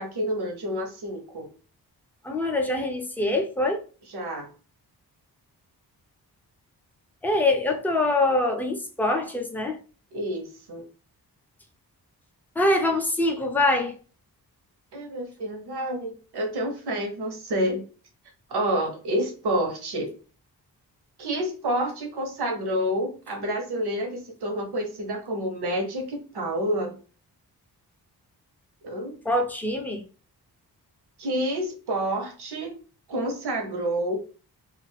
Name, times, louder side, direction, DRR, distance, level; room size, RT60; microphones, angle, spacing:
voice 1, 0.0-1.5 4.1-4.5 10.1-10.8 14.9-17.8 18.5-20.1 21.2-27.0 28.8-29.2 31.2-32.8 33.1-34.2, right 1 dB, 85° right, 0.9 m, -29 dB
voice 2, 2.2-3.8 7.2-9.8 12.6-14.0 29.3-30.0, left 2 dB, 5° left, 0.4 m, -24 dB
2.4 x 2.4 x 3.2 m
wide cardioid pair, 140°, 38 cm